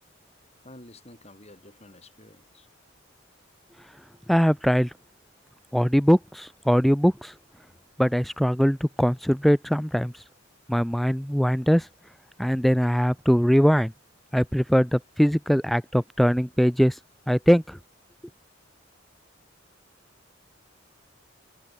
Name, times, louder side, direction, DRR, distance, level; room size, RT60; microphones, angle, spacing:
voice 1, 0.6-2.7, left 1 dB, 35° left, 7.9 m, -49 dB
voice 2, 4.3-4.9 5.7-7.3 8.0-10.1 10.7-11.8 12.4-13.9 14.3-16.9 17.3-17.8, equal, ahead, 0.3 m, -21 dB
head